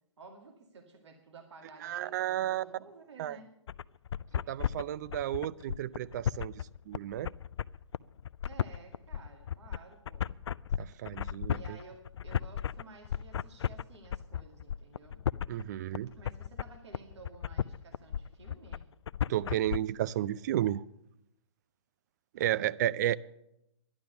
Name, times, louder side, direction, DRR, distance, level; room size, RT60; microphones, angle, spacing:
voice 1, 0.2-3.5 8.4-10.4 11.5-15.3 16.2-18.9, right 3 dB, 65° right, 2.1 m, -53 dB
voice 2, 1.8-2.7 3.2-3.4 4.5-7.3 10.8-11.8 15.5-16.1 19.3-20.8 22.3-23.2, right 12 dB, 35° right, 0.4 m, -32 dB
sound 1, 3.7-19.8, left 9 dB, 65° left, 0.4 m, -34 dB
12.0 x 10.5 x 6.8 m
figure-of-eight pair, 130°, 16 cm